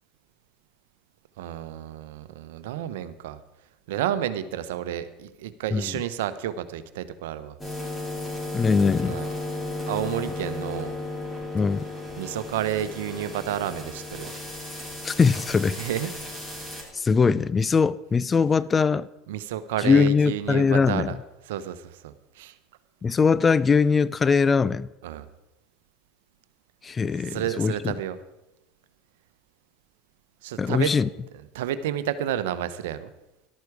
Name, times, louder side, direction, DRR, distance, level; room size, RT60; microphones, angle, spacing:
voice 1, 1.4-3.4 3.9-7.5 9.1-9.3 9.8-10.9 12.2-14.3 15.8-16.1 19.3-21.2 21.5-22.6 25.0-25.2 27.3-28.2 30.4-30.9 31.5-33.1, right 10 dB, 80° right, 0.9 m, -30 dB
sound 1, 7.6-16.8, left 2 dB, 10° left, 5.8 m, -34 dB
voice 2, 8.5-9.2 11.5-11.8 15.0-15.8 16.9-19.1 19.8-21.2 23.0-24.9 26.8-27.7 30.6-31.1, left 5 dB, 25° left, 0.5 m, -21 dB
13.5 x 12.0 x 4.8 m
hypercardioid pair, 90°, 0 cm